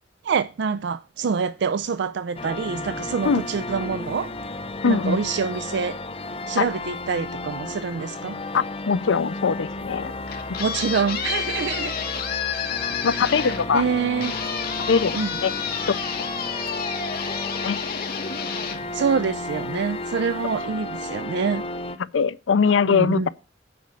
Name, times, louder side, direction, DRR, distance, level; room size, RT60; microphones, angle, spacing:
voice 1, 0.3-4.3 4.8-6.0 6.5-8.4 10.6-12.0 12.9-14.3 15.1-15.3 18.9-21.7 22.9-23.3, right 5 dB, 65° right, 0.4 m, -26 dB
sound 1, 2.4-22.0, left 2 dB, 30° left, 0.6 m, -33 dB
voice 2, 4.8-5.2 6.6-6.7 8.5-10.1 13.0-13.8 14.9-15.2 15.4-15.5 17.6-17.8 22.1-23.3, left 5 dB, 80° left, 0.5 m, -21 dB
sound 2, 10.0-19.7, left 7 dB, 55° left, 1.2 m, -31 dB
8.5 x 5.1 x 7.6 m
head